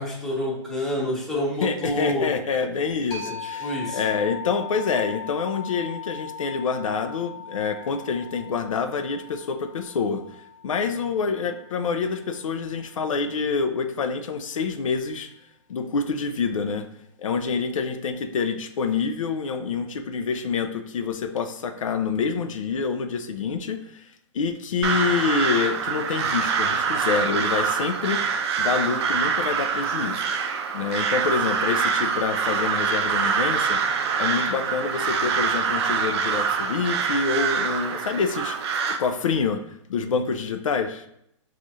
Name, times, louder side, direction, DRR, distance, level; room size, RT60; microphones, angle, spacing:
voice 1, 0.0-2.3 3.2-3.3 3.6-4.0, left 1 dB, ahead, -5 dB, 0.7 m, -27 dB
voice 2, 1.6-10.2 10.6-15.3 15.7-16.9 17.2-24.1 24.3-28.2 28.6-30.3 30.7-38.6 39.0-41.0, left 5 dB, 90° left, 7 dB, 0.4 m, -27 dB
sound 1, 3.1-12.5, left 6 dB, 50° left, 1.1 m, -39 dB
Crow, 24.8-39.0, right 6 dB, 55° right, 0.4 m, -25 dB
4.8 x 2.4 x 2.7 m, 0.76 s
hypercardioid pair, 145°, 16 cm